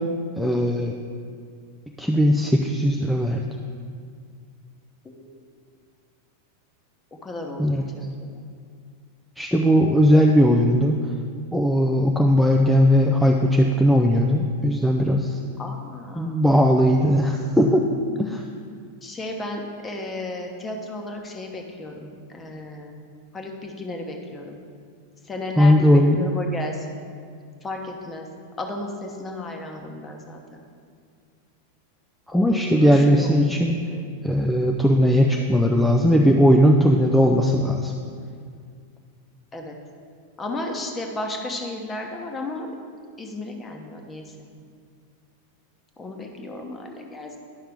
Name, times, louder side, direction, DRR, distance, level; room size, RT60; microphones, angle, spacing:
voice 1, 0.4-1.0 2.0-3.4 7.6-7.9 9.4-10.9 11.5-15.4 16.2-17.9 18.2-18.4 25.6-26.2 32.3-33.8 34.2-37.9, equal, ahead, 0 dB, 0.5 m, -18 dB
voice 2, 5.0-5.4 7.2-8.4 15.6-16.4 19.0-22.9 23.3-24.6 25.3-26.9 27.6-28.3 28.6-30.6 32.3-34.1 39.5-39.7 40.4-42.7 43.2-44.5 46.0-47.4, left 2 dB, 20° left, 2 dB, 1.0 m, -34 dB
10.5 x 5.7 x 3.5 m, 2.1 s
figure-of-eight pair, 90°, 0 cm